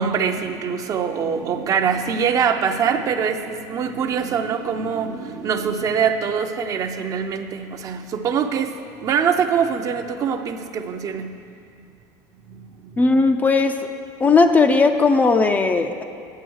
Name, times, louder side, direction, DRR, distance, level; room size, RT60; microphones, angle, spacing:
voice 1, 0.0-11.4 11.7-11.9 12.5-13.2, right 7 dB, 40° right, 7 dB, 0.6 m, -24 dB
voice 2, 13.0-13.9 14.2-16.0, left 4 dB, 20° left, 7 dB, 0.4 m, -17 dB
9.2 x 6.9 x 6.3 m, 2.4 s
cardioid pair, 135°, 9 cm